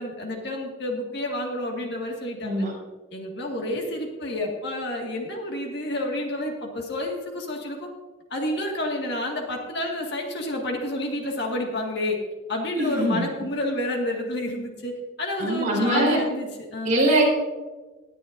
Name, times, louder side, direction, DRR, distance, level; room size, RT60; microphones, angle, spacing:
voice 1, 0.0-2.7 3.1-7.9 8.3-12.2 12.5-17.0, left 1 dB, 55° left, 0 dB, 1.9 m, -29 dB
voice 2, 12.7-13.3 15.4-16.2 16.8-17.2, right 1 dB, 40° right, -2 dB, 4.3 m, -22 dB
18.5 x 10.5 x 2.6 m, 1.3 s
head